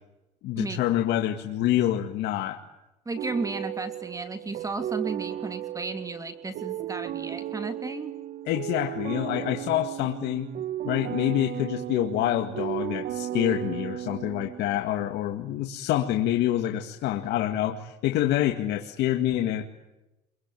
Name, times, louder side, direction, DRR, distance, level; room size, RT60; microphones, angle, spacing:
voice 1, 0.4-2.6 8.5-10.5 10.8-19.6, left 12 dB, 85° left, 5 dB, 2.1 m, -26 dB
voice 2, 3.0-8.1, right 3 dB, 20° right, 9 dB, 3.0 m, -34 dB
sound 1, 3.2-14.9, right 12 dB, 70° right, 1.5 m, -35 dB
28.0 x 23.0 x 9.2 m, 0.98 s
cardioid pair, 110°, 17 cm